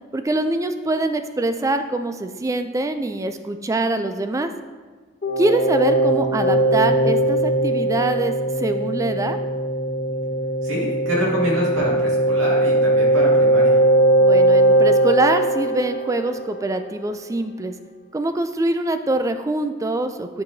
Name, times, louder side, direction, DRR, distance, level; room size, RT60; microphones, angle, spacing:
voice 1, 0.1-4.5 5.4-9.4 14.2-17.7 18.1-20.4, right 2 dB, 15° right, 8 dB, 0.3 m, -24 dB
sound 1, 5.2-16.8, right 1 dB, 40° left, 1.5 m, -19 dB
voice 2, 10.6-13.8, equal, 85° right, -4 dB, 2.1 m, -26 dB
10.5 x 4.6 x 2.7 m, 1.4 s
head